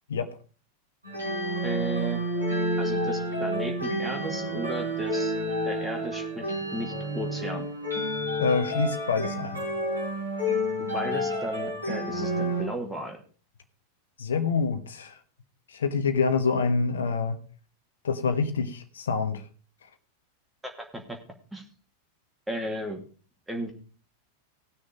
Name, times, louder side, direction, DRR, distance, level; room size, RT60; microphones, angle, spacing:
sound 1, 1.0-12.6, equal, 85° right, 5.1 m, -29 dB
voice 1, 1.6-2.3 2.8-5.3 5.6-7.7 10.8-13.2 20.6-21.2 21.5-21.6 22.5-23.0 23.5-23.7, right 1 dB, 5° right, 2 dB, 2.4 m, -35 dB
voice 2, 8.4-9.6 14.2-15.2 15.7-17.4 18.0-19.4, left 5 dB, 65° left, 9 dB, 1.2 m, -26 dB
18.5 x 6.4 x 4.9 m, 0.39 s
figure-of-eight pair, 90°, 0 cm